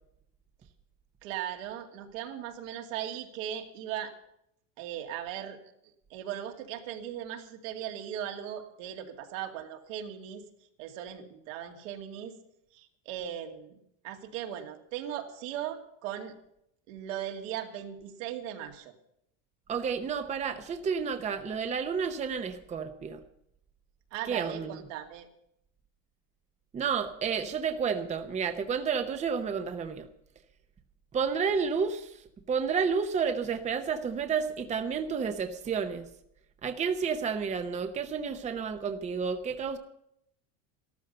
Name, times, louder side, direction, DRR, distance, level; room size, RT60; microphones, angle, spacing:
voice 1, 1.2-4.1 4.8-5.6 6.1-10.4 10.8-12.4 12.7-13.8 14.0-16.3 16.9-18.9 24.1-25.3, right 10 dB, 75° right, 4 dB, 2.5 m, -38 dB
voice 2, 19.7-23.2 24.3-24.8 26.7-30.1 31.1-36.1 36.6-39.8, right 6 dB, 20° right, 8 dB, 0.8 m, -31 dB
13.0 x 13.0 x 6.8 m, 0.75 s
supercardioid pair, 150°, 39 cm